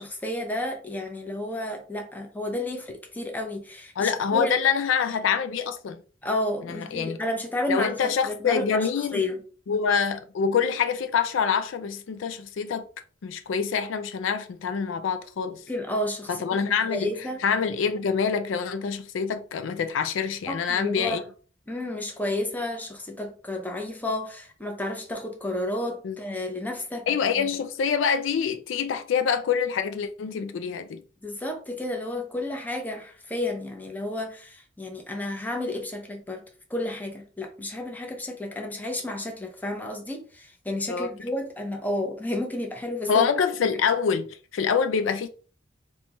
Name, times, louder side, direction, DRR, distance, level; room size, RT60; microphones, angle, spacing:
voice 1, 0.0-4.5 6.2-9.4 15.7-17.4 20.5-21.2 21.7-27.1 27.3-27.6 31.2-36.4 36.7-43.3, left 1 dB, 10° left, 0.7 m, -31 dB
voice 2, 4.0-6.0 6.9-7.2 7.7-9.2 9.7-12.9 13.2-15.6 16.3-17.1 17.4-21.2 26.0-26.2 27.1-31.0 40.9-41.1 43.1-45.3, left 6 dB, 70° left, 0.4 m, -26 dB
2.9 x 2.3 x 4.0 m
head